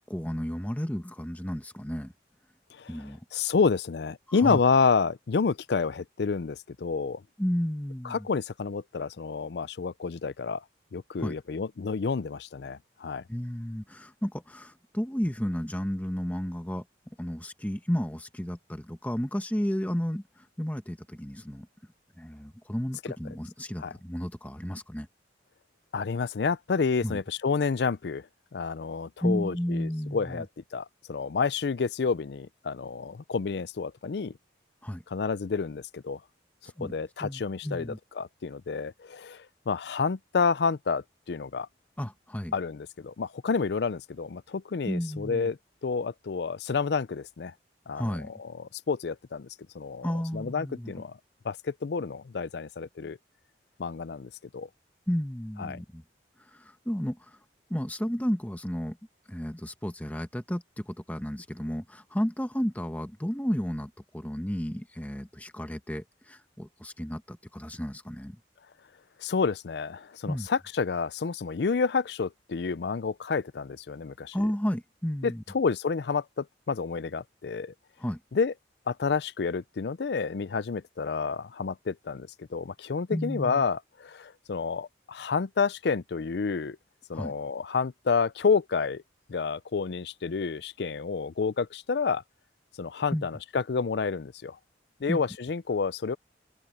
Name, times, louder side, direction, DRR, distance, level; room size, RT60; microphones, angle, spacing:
voice 1, 0.1-2.1 2.9-3.2 4.4-4.6 7.4-8.3 11.2-11.3 13.3-16.8 17.2-21.7 22.2-25.1 27.0-27.2 29.2-30.4 34.8-35.0 36.8-36.9 37.2-38.0 42.0-42.5 44.8-45.5 47.9-48.3 50.0-50.9 55.1-56.0 56.5-57.4 57.7-59.0 59.3-68.4 70.3-70.5 74.3-75.4 78.0-78.2 83.1-83.7 87.1-87.3 93.1-93.3 95.1-95.2, equal, 10° left, 1.1 m, -32 dB
voice 2, 3.3-7.2 8.0-10.6 10.9-13.2 23.8-23.9 25.9-28.3 28.5-30.5 30.7-34.3 35.1-36.2 36.8-41.7 42.5-47.5 47.9-49.5 49.7-51.2 51.4-53.2 53.8-54.7 55.6-55.8 69.2-74.4 75.2-77.7 78.3-78.5 78.9-86.8 87.1-89.0 89.3-92.2 92.8-94.6 95.0-96.2, left 5 dB, 65° left, 0.5 m, -29 dB
open air
head